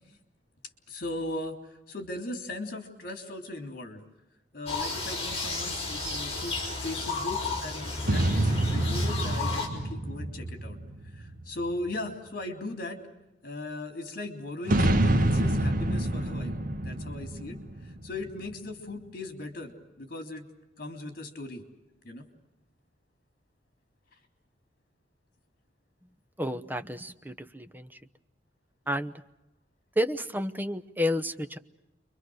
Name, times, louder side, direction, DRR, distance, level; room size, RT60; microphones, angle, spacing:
voice 1, 0.9-4.0 4.5-10.8 11.1-13.0 13.4-17.6 17.8-20.5 20.8-21.6 22.0-22.3, left 2 dB, 55° left, 6 dB, 3.5 m, -38 dB
sound 1, 4.7-9.7, left 3 dB, 35° left, 5.3 m, -33 dB
sound 2, 8.0-11.7 14.7-18.4, right 1 dB, 50° right, 1.5 m, -27 dB
voice 2, 26.4-27.9 28.9-29.1 30.0-31.6, equal, 10° right, 9 dB, 0.9 m, -30 dB
29.5 x 23.5 x 6.4 m, 0.94 s
head